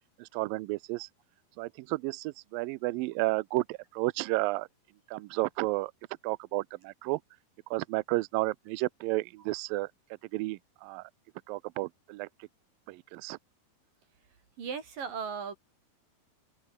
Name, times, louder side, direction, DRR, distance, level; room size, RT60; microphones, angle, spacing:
voice 1, 0.2-1.1 1.6-4.7 5.1-5.9 6.2-7.2 7.7-9.9 10.3-11.0 11.5-12.3 12.9-13.4, right 21 dB, 90° right, 2.1 m, -32 dB
voice 2, 14.6-15.6, right 6 dB, 55° right, 5.7 m, -36 dB
open air
omnidirectional pair, 4.7 m